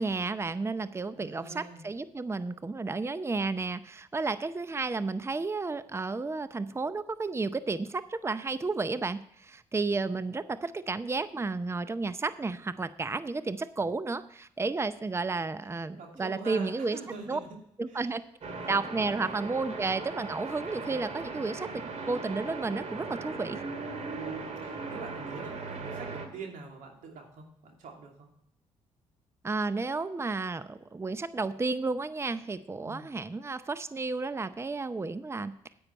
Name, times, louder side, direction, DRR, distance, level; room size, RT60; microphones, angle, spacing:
voice 1, 0.0-17.0 17.3-17.4 17.8-18.2 18.7-23.6 29.4-35.6, right 3 dB, 20° right, 14 dB, 0.6 m, -32 dB
voice 2, 1.1-1.8 15.9-17.5 17.9-18.1 18.7-18.8 20.7-21.0 23.3-23.6 24.1-28.3 32.8-33.1, right 4 dB, 75° right, 1 dB, 2.7 m, -45 dB
sound 1, 18.4-26.3, right 4 dB, 55° right, 2.1 m, -38 dB
9.8 x 8.7 x 4.5 m, 0.73 s
hypercardioid pair, 50°, 14 cm